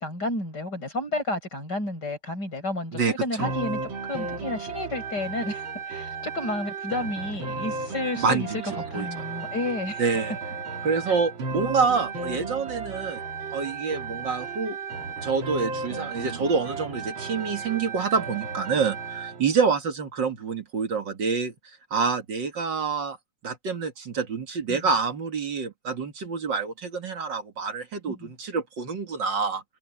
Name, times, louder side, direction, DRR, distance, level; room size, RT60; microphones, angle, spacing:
voice 1, 0.0-3.8 4.1-8.6 8.9-10.0 11.1-11.2 24.7-24.9 28.2-28.3, left 2 dB, 60° left, 7.8 m, -31 dB
sound 1, 3.4-19.4, right 4 dB, 85° right, 2.8 m, -34 dB
voice 2, 8.2-8.6 8.9-9.1 10.0-10.3 10.8-13.2 13.5-14.8 15.2-21.5 21.9-23.2 23.4-29.6, right 5 dB, 65° right, 2.7 m, -27 dB
omnidirectional pair, 2.1 m